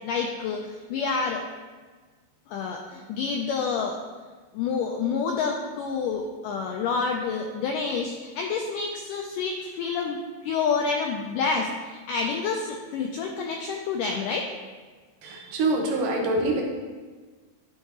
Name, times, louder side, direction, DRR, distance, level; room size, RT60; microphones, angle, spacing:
voice 1, 0.0-1.4 2.5-4.0 4.5-14.5, left 5 dB, 90° left, 2 dB, 1.8 m, -28 dB
voice 2, 15.2-16.6, right 2 dB, 75° right, 0 dB, 2.2 m, -25 dB
11.0 x 5.6 x 2.9 m, 1.4 s
omnidirectional pair, 4.3 m